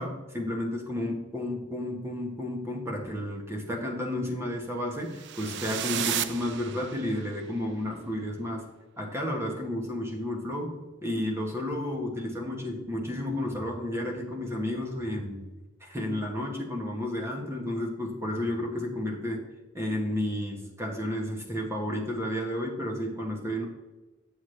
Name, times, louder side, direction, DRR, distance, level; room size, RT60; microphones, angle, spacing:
voice 1, 0.0-8.7 9.0-15.5 15.8-19.5 19.7-23.7, left 1 dB, 15° right, 0 dB, 1.1 m, -32 dB
sound 1, 5.1-7.3, right 10 dB, 55° right, 0.4 m, -33 dB
7.8 x 6.9 x 3.2 m, 1.2 s
head